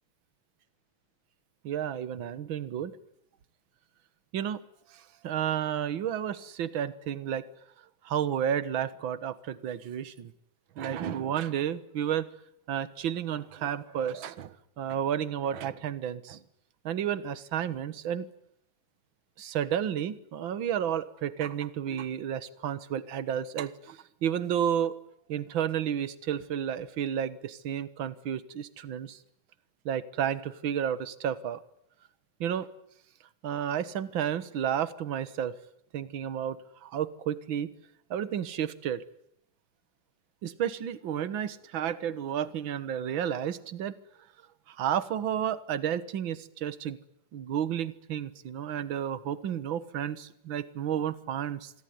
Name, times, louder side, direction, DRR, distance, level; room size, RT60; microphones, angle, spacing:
voice 1, 1.6-2.9 4.3-4.6 5.2-7.4 8.0-10.3 10.8-12.3 12.7-16.4 16.8-18.3 19.4-24.9 25.3-29.2 29.8-31.6 32.4-32.7 33.4-35.5 35.9-37.7 38.1-39.0 40.4-43.9 44.7-47.0 47.3-51.7, right 9 dB, 50° right, 16 dB, 1.7 m, -31 dB
27.0 x 22.5 x 9.6 m, 0.75 s
omnidirectional pair, 3.3 m